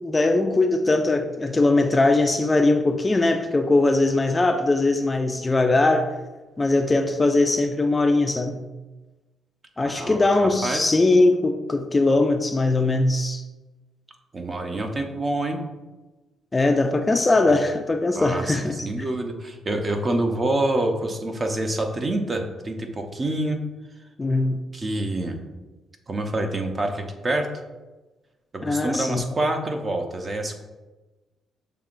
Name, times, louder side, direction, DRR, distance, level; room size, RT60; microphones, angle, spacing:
voice 1, 0.0-6.1 6.6-8.6 9.8-13.4 16.5-18.9 24.2-24.6 28.6-29.2, left 2 dB, 20° left, 5 dB, 0.3 m, -20 dB
voice 2, 9.8-10.9 14.3-15.6 17.5-17.6 18.2-23.6 24.7-25.4 26.1-27.5 28.5-30.6, right 1 dB, 35° right, 4 dB, 0.6 m, -27 dB
6.7 x 2.9 x 2.5 m, 1.1 s
cardioid pair, 90°, 0 cm